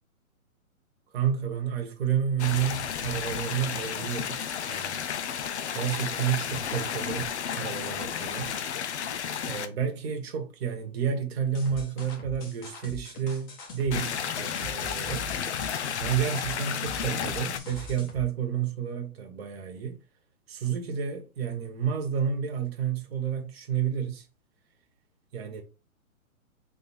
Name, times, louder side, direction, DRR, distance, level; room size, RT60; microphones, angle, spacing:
voice 1, 1.1-4.4 4.7-5.0 5.7-8.5 9.5-15.3 16.0-20.0 20.5-24.2 25.3-25.6, right 8 dB, 45° right, 1.3 m, -30 dB
sound 1, 2.4-9.7 13.9-17.6, left 8 dB, 55° left, 0.6 m, -32 dB
sound 2, 11.5-18.3, left 3 dB, 30° left, 1.5 m, -42 dB
3.5 x 3.5 x 4.3 m
hypercardioid pair, 155°, 42 cm